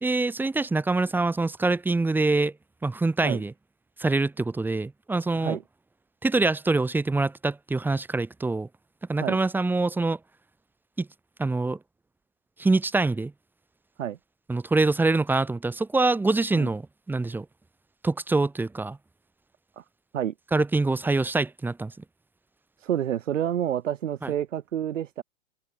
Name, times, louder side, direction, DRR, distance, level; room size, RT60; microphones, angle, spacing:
voice 1, 0.0-2.5 2.8-3.5 4.0-5.6 6.2-8.7 9.1-10.2 11.0-11.1 11.4-11.8 12.6-13.3 14.5-17.4 18.0-19.0 20.5-21.9 24.2-24.3, right 3 dB, 5° right, 1.7 m, -25 dB
voice 2, 22.8-25.2, right 10 dB, 80° right, 5.1 m, -29 dB
open air
hypercardioid pair, 150°, 37 cm